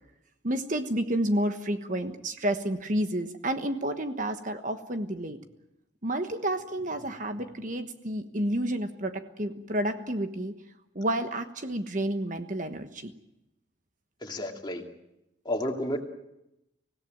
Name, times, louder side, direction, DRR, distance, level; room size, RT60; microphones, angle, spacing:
voice 1, 0.4-5.4 6.0-10.5 10.9-13.1, right 1 dB, 45° right, 8 dB, 1.3 m, -30 dB
voice 2, 14.2-14.8 15.4-16.0, left 1 dB, 25° left, 2 dB, 2.6 m, -31 dB
25.0 x 17.0 x 9.3 m, 0.90 s
head